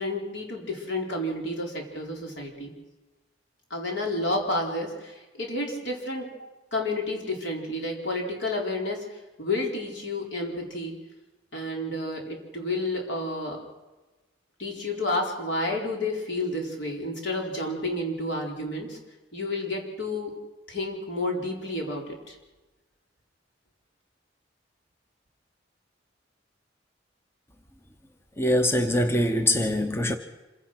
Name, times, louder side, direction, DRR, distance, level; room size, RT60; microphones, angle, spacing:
voice 1, 0.0-2.7 3.7-10.9 11.5-13.6 14.6-19.0 19.3-20.4 20.7-22.4, left 2 dB, 70° left, 4.4 m, -30 dB
voice 2, 28.4-30.2, left 1 dB, 15° left, 0.9 m, -23 dB
26.0 x 16.5 x 6.0 m
head